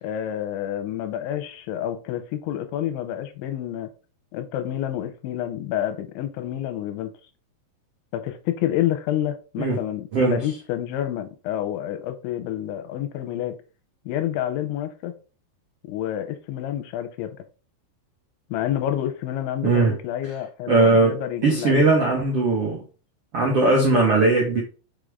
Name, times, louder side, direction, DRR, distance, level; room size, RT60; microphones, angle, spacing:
voice 1, 0.0-3.9 4.3-7.1 8.1-13.6 14.1-15.1 15.9-17.4 18.5-21.8, left 11 dB, 85° left, 3.0 m, -28 dB
voice 2, 20.7-22.8 23.3-24.6, right 3 dB, 90° right, 1.3 m, -19 dB
6.4 x 5.1 x 3.6 m
omnidirectional pair, 5.6 m